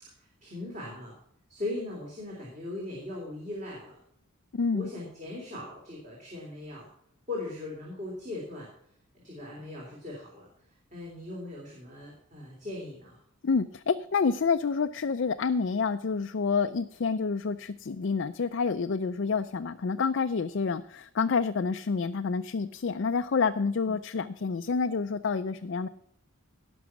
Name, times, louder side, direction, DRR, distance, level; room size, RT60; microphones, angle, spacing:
voice 1, 0.2-1.1 1.5-4.0 4.7-6.9 7.3-8.7 9.2-10.5 10.9-13.2 23.8-24.0, left 2 dB, 35° right, -3 dB, 3.5 m, -39 dB
voice 2, 4.5-4.9 13.4-25.9, left 5 dB, 55° left, 8 dB, 0.4 m, -28 dB
17.5 x 6.2 x 5.9 m, 0.70 s
head